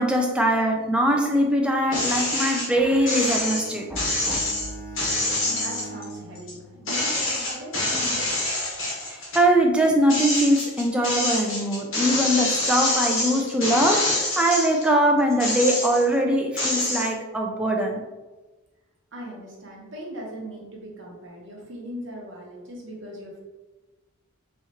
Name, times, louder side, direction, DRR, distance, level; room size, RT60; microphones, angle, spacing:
voice 1, 0.0-4.4 9.3-18.0, right 1 dB, 5° right, 1 dB, 0.4 m, -22 dB
sound 1, 1.9-2.7 3.1-6.5 6.9-9.4 9.8-14.9 15.3-16.1 16.6-17.1, left 2 dB, 65° left, 1.2 m, -26 dB
Bowed string instrument, 2.7-7.3, right 2 dB, 40° left, 1.2 m, -42 dB
voice 2, 5.5-8.4 19.1-23.4, equal, 60° right, -3 dB, 1.0 m, -39 dB
4.2 x 2.5 x 2.9 m, 1.2 s
head